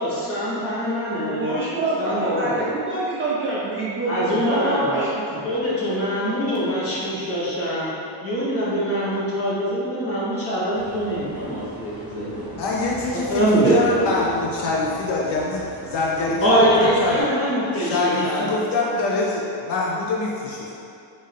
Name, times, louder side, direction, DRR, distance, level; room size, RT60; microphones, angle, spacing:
voice 1, 0.0-2.6 4.1-4.9 5.4-7.9 8.2-12.6 13.1-14.3 16.4-18.5, equal, 25° left, -9 dB, 1.1 m, -23 dB
voice 2, 1.3-5.4, right 2 dB, 30° right, -8 dB, 0.4 m, -26 dB
sound 1, 10.7-17.2, equal, ahead, 0.7 m, -41 dB
voice 3, 12.6-16.6 17.0-17.3 17.7-20.7, left 3 dB, 55° left, -3 dB, 0.6 m, -25 dB
5.4 x 2.6 x 3.3 m, 2.6 s
cardioid pair, 170°, 50 cm